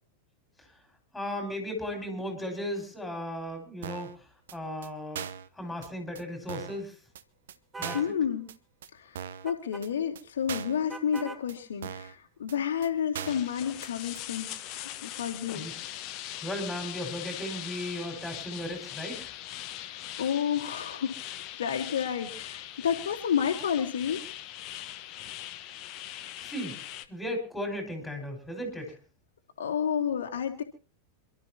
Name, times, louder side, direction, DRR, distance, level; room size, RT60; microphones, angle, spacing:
voice 1, 1.1-5.3 5.5-7.0 7.8-8.0 15.5-15.7 16.4-19.3 26.4-26.8 27.1-29.0, equal, 5° left, 4 dB, 5.4 m, -36 dB
sound 1, 3.8-4.2 4.5-4.6 4.8-4.9 5.2-5.5 5.8-5.9 6.2-6.3 6.5-6.8 7.2-7.3 7.5-7.6 7.8-8.1 8.5-8.6 8.8-8.9 9.2-9.5 9.8-9.9 10.2-10.3 10.5-10.8 11.2-11.3 11.5-11.6 11.8-12.2 12.5-12.6 12.8-12.9 13.1-13.5 13.8-13.9 14.2-14.3, right 8 dB, 60° right, 0.8 m, -39 dB
sound 2, 7.7-8.1 9.5-9.8 10.9-11.4, right 3 dB, 15° right, 1.1 m, -41 dB
voice 2, 7.9-8.5 8.9-14.5 15.0-15.7 19.8-21.1 21.5-24.2 29.6-30.6, left 8 dB, 65° left, 2 dB, 1.8 m, -30 dB
sound 3, 13.2-27.1, left 13 dB, 40° left, 1.1 m, -41 dB
27.5 x 12.5 x 2.9 m, 0.34 s
figure-of-eight pair, 90°, 0 cm